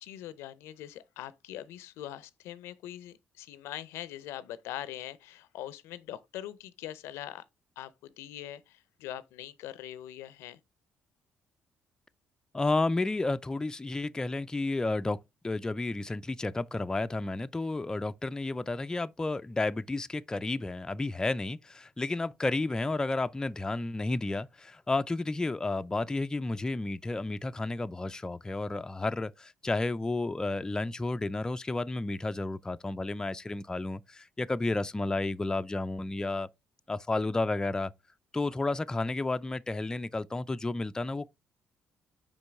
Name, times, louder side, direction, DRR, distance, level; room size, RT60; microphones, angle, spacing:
voice 1, 0.0-7.4 7.8-10.6, left 12 dB, 80° left, 0.5 m, -42 dB
voice 2, 12.5-15.2 15.4-36.5 36.9-37.9 38.3-41.3, left 2 dB, 15° left, 0.4 m, -31 dB
5.3 x 5.1 x 3.4 m
supercardioid pair, 70°, 4 cm